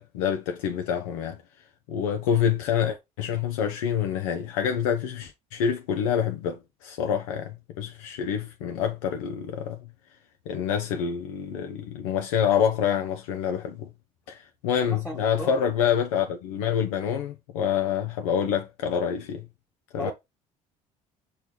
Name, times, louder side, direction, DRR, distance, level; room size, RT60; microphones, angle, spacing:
voice 1, 0.0-1.4 1.9-9.8 10.5-13.9 14.3-19.4 19.9-20.1, left 8 dB, 85° left, 0.5 m, -27 dB
voice 2, 14.9-15.5 20.0-20.1, equal, ahead, 1.0 m, -35 dB
5.6 x 2.3 x 3.1 m
hypercardioid pair, 70°, 17 cm